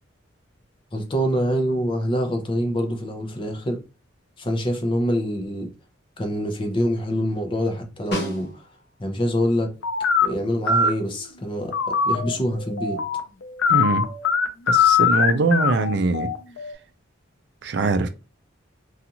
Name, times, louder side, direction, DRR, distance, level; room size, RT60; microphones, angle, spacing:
voice 1, 0.9-3.8 4.4-5.7 6.2-8.5 9.0-9.7 10.2-13.0, equal, 25° left, 0.6 m, -25 dB
Snare drum, 8.1-9.0 13.5-13.6, left 1 dB, 55° left, 0.9 m, -32 dB
sound 1, 9.8-10.3 10.7-10.9 11.5-16.7, left 6 dB, 80° left, 0.5 m, -22 dB
voice 2, 13.7-14.1 14.7-16.3 17.6-18.1, right 3 dB, 55° right, 0.4 m, -22 dB
2.5 x 2.4 x 2.8 m
head